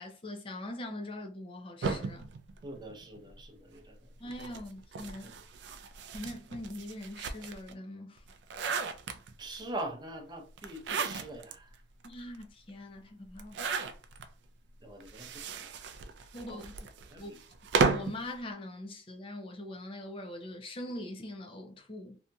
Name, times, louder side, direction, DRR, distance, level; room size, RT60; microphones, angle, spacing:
voice 1, 0.0-2.3 4.2-5.3 6.1-8.2 12.0-13.6 16.3-16.7 17.2-17.3 17.9-22.2, left 1 dB, 30° left, 0.5 m, -42 dB
sound 1, 1.8-3.4 4.3-7.7 8.2-9.6 10.6-11.5 12.0-12.1 12.3-12.4 13.3-14.3 15.0-18.2, right 4 dB, 70° right, 0.3 m, -34 dB
voice 2, 2.6-4.1 4.5-4.6 5.2-5.3 9.4-11.8 14.8-15.7 16.5-16.6 17.1-17.4, right 1 dB, 25° right, 0.6 m, -43 dB
2.7 x 2.6 x 2.3 m
head